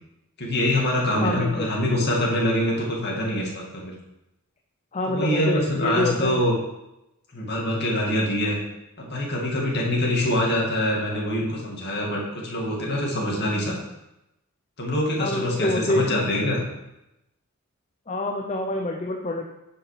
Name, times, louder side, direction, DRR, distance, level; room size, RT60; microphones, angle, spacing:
voice 1, 0.4-3.9 5.1-6.5 7.3-8.6 9.0-13.8 14.8-16.6, left 1 dB, 50° left, -2 dB, 2.2 m, -24 dB
voice 2, 1.2-1.7 4.9-6.4 15.2-16.2 18.1-19.5, left 1 dB, 30° left, 1 dB, 0.6 m, -26 dB
9.9 x 5.1 x 4.9 m, 0.92 s
head